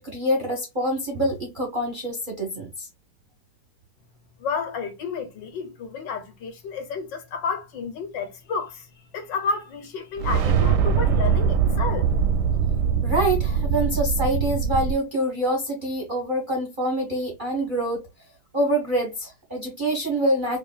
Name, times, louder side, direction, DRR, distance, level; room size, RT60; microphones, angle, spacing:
voice 1, 0.0-2.9 13.0-18.1 18.5-20.6, right 1 dB, 35° right, 0.8 m, -25 dB
voice 2, 4.4-8.9 9.1-12.1, left 5 dB, 70° left, 1.6 m, -31 dB
sound 1, 10.2-14.9, right 6 dB, 75° right, 1.1 m, -22 dB
4.5 x 2.7 x 2.3 m
omnidirectional pair, 2.1 m